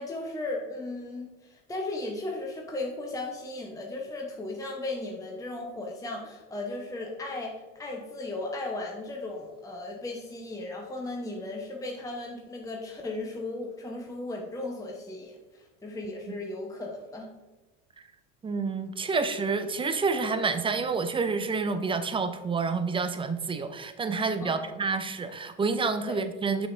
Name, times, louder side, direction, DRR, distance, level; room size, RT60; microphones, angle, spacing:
voice 1, 0.0-17.3 24.4-24.7 26.0-26.2, left 2 dB, 10° left, 0 dB, 0.8 m, -36 dB
voice 2, 18.4-26.7, right 4 dB, 15° right, 10 dB, 0.4 m, -28 dB
6.4 x 6.2 x 2.5 m, 1.1 s
hypercardioid pair, 80°, 41 cm